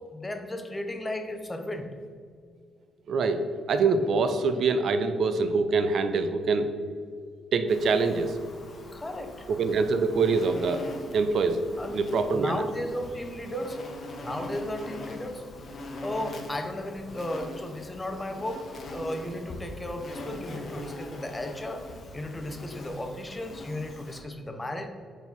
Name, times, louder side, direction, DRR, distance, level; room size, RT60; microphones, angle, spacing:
voice 1, 0.1-1.9 8.9-9.4 11.8-12.0 12.3-13.8 14.2-15.4 16.0-21.9 22.1-24.9, left 1 dB, 15° left, 6 dB, 0.6 m, -35 dB
voice 2, 3.1-3.4 3.7-6.7 7.5-8.3 9.5-10.8 11.1-11.7 11.9-12.7, right 4 dB, 60° right, 9 dB, 0.4 m, -24 dB
Insect, 7.7-24.2, left 1 dB, 50° left, 0.9 m, -42 dB
4.6 x 3.9 x 5.3 m, 2.1 s
cardioid pair, 90°, 0 cm